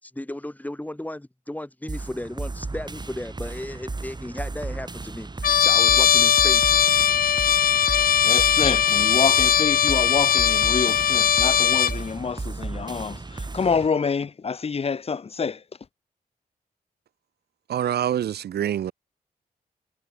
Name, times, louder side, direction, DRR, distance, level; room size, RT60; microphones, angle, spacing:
voice 1, 0.0-5.3 5.6-6.6, left 1 dB, 10° left, 6.7 m, -35 dB
sound 1, 1.9-13.9, right 3 dB, 25° right, 2.1 m, -34 dB
Trumpet, 5.4-12.0, left 8 dB, 65° left, 0.9 m, -19 dB
voice 2, 8.2-15.6, left 5 dB, 40° left, 0.8 m, -27 dB
voice 3, 17.7-18.9, right 10 dB, 90° right, 2.9 m, -25 dB
cardioid pair, 70°, 16 cm